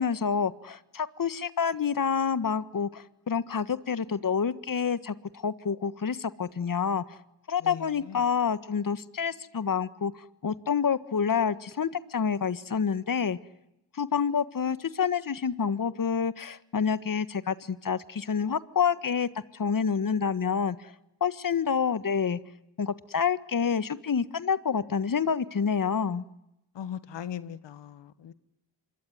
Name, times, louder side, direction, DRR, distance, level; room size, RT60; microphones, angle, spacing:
voice 1, 0.0-7.2 7.5-10.1 10.4-13.4 13.9-20.9 21.2-22.4 22.8-26.2, left 6 dB, 50° left, 1.6 m, -28 dB
voice 2, 26.7-28.3, left 9 dB, 85° left, 1.5 m, -39 dB
26.5 x 22.0 x 9.7 m
cardioid pair, 55°, 42 cm